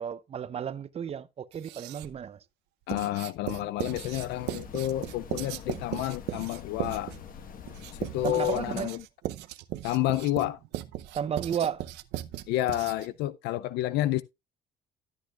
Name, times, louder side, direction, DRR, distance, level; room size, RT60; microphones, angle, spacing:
voice 1, 0.0-2.4 8.2-9.0 11.1-11.9, right 8 dB, 35° right, 0.7 m, -33 dB
Writing, 1.5-2.2 2.9-13.2, right 14 dB, 90° right, 0.7 m, -38 dB
voice 2, 2.9-7.1 8.0-9.0 9.8-10.6 12.5-14.2, left 14 dB, 85° left, 0.4 m, -29 dB
sound 1, 3.8-8.8, left 8 dB, 55° left, 1.3 m, -45 dB
13.0 x 8.3 x 2.4 m
cardioid pair, 110°, 17 cm